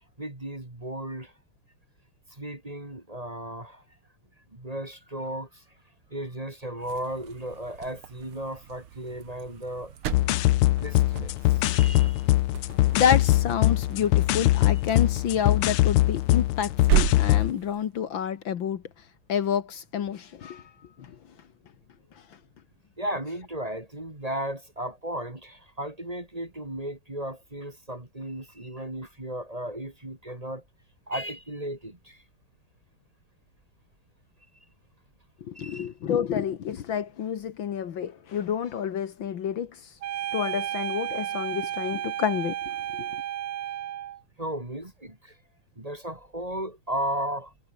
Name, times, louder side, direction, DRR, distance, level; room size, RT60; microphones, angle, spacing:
voice 1, 0.2-1.3 2.3-3.8 4.5-5.6 6.1-9.9 10.8-12.3 23.0-30.6 31.1-32.2 35.5-35.9 44.4-45.4 45.8-47.5, right 1 dB, 15° right, 2.6 m, -35 dB
sound 1, 6.8-17.9, right 9 dB, 85° right, 2.3 m, -34 dB
sound 2, 10.1-17.5, left 16 dB, 85° left, 1.6 m, -22 dB
voice 2, 12.7-18.8 19.3-20.6 21.0-21.2 35.4-39.8 40.3-42.6 42.9-43.1, left 8 dB, 65° left, 1.9 m, -29 dB
sound 3, 40.0-44.2, right 12 dB, 65° right, 1.6 m, -32 dB
omnidirectional pair, 2.4 m